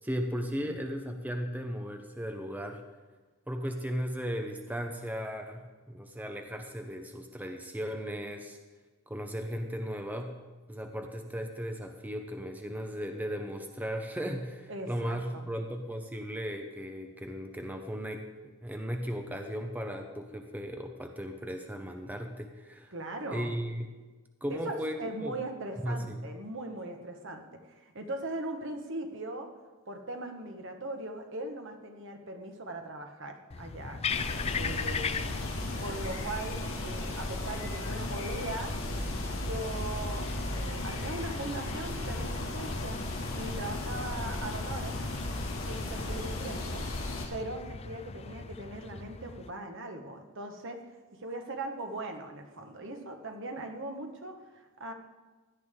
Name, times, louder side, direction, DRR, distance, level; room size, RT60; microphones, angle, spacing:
voice 1, 0.0-2.8 3.5-8.6 9.1-10.4 10.7-18.3 18.6-22.9 23.3-23.9 24.4-25.4 25.8-26.2, equal, 10° right, 4 dB, 0.7 m, -36 dB
voice 2, 14.7-15.5 22.9-23.6 24.5-29.5 29.9-34.0 34.6-35.4 35.8-38.7 39.3-43.0 43.3-45.0 45.7-46.8 47.3-50.8 51.2-54.9, right 2 dB, 60° right, 4 dB, 1.4 m, -40 dB
sound 1, 33.5-49.5, left 4 dB, 30° left, 0.4 m, -38 dB
sound 2, 34.1-47.3, left 1 dB, 65° left, 2.1 m, -36 dB
16.5 x 10.5 x 3.7 m, 1.3 s
head